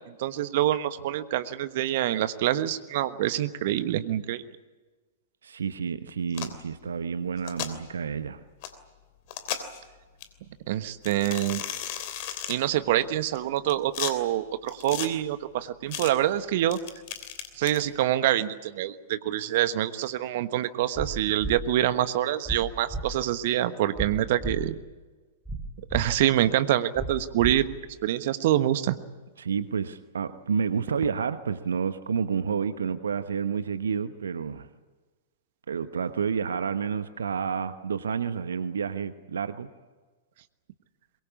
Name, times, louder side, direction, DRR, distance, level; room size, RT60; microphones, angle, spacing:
voice 1, 0.1-4.4 10.7-11.6 12.5-16.8 17.6-24.8 25.9-27.7 28.0-29.0, right 13 dB, 50° right, 12 dB, 1.3 m, -26 dB
voice 2, 5.4-8.4 29.4-34.7 35.7-39.7, right 6 dB, 70° right, 11 dB, 1.1 m, -30 dB
sound 1, 6.3-6.6 7.4-7.7 8.6-8.7 9.3-9.8 10.2-10.3 11.0-12.6 13.3-14.1 14.7-15.1 15.9-16.1 16.7-17.8, left 10 dB, 45° left, 3.1 m, -35 dB
sound 2, 21.0-21.1 21.4-21.5 22.5-22.6 22.9-23.0 24.0-24.1 24.4-24.5 25.5-25.6 25.9-26.0 27.0-27.1 27.4-27.5, right 2 dB, ahead, 6.9 m, -32 dB
23.0 x 23.0 x 8.5 m, 1.3 s
figure-of-eight pair, 105°, 0 cm